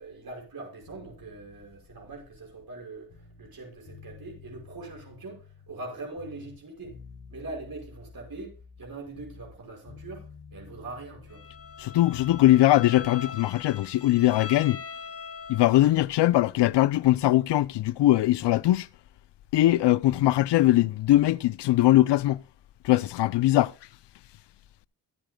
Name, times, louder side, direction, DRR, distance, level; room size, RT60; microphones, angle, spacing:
voice 1, 0.0-7.0 7.3-8.5 8.8-10.2 10.5-11.4, right 3 dB, 60° right, 5.7 m, -42 dB
sound 1, 0.9-3.5 3.9-5.9 6.2-9.6 9.9-12.5, left 5 dB, 65° left, 4.0 m, -50 dB
Bowed string instrument, 11.3-16.0, left 6 dB, 35° left, 1.2 m, -41 dB
voice 2, 11.8-14.8 15.5-18.9 19.5-22.4 22.8-23.7, left 15 dB, 85° left, 0.5 m, -21 dB
22.5 x 8.9 x 2.2 m
cardioid pair, 70°, 40 cm